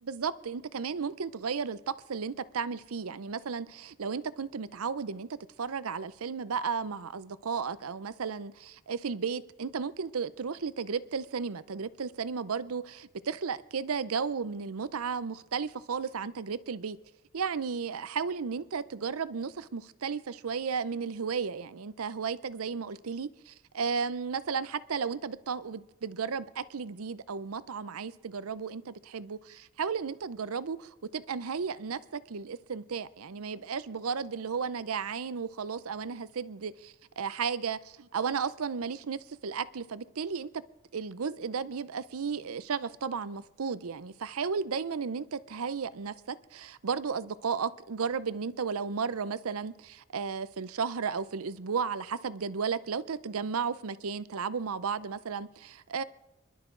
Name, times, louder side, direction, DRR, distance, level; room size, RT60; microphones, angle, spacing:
voice 1, 0.0-5.3 5.6-17.0 17.3-23.3 23.7-40.5 40.9-56.0, right 5 dB, 90° right, 0.6 m, -34 dB
26.0 x 12.0 x 3.8 m
head